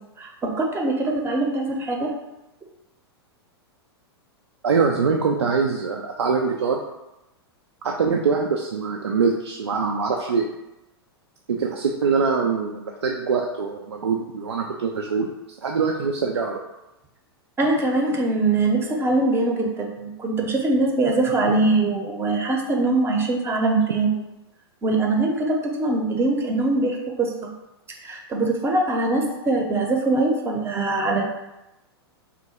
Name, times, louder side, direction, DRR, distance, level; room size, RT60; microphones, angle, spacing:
voice 1, 0.2-2.1 17.6-24.2 24.8-27.3 28.0-31.3, right 2 dB, 20° right, 1 dB, 0.7 m, -22 dB
voice 2, 4.6-6.8 7.8-10.4 11.5-15.3 15.6-16.6, right 5 dB, 85° right, 1 dB, 0.4 m, -23 dB
3.7 x 2.2 x 4.2 m, 0.96 s
hypercardioid pair, 105°, 14 cm